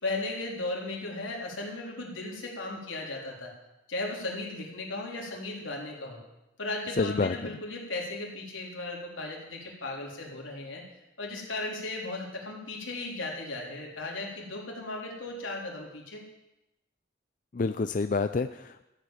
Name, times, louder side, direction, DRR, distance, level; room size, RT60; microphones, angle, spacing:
voice 1, 0.0-3.5 3.9-6.2 6.6-10.8 11.2-16.2, left 2 dB, 85° left, -1 dB, 3.8 m, -36 dB
voice 2, 7.0-7.5 17.5-18.8, left 4 dB, 40° left, 10 dB, 0.4 m, -28 dB
14.0 x 8.2 x 9.1 m, 0.93 s
head